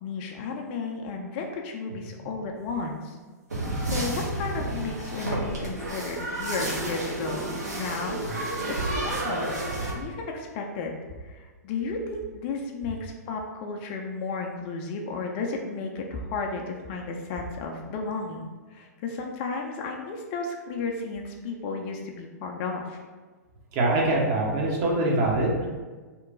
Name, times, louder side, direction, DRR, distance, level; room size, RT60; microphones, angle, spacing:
voice 1, 0.0-3.2 3.8-9.6 9.9-23.0, left 4 dB, 35° left, 1 dB, 0.4 m, -33 dB
sound 1, 3.5-9.9, right 1 dB, 75° right, 1.0 m, -31 dB
voice 2, 23.7-25.7, right 2 dB, 35° right, -2 dB, 0.8 m, -23 dB
2.9 x 2.2 x 3.7 m, 1.4 s
figure-of-eight pair, 110°, 9 cm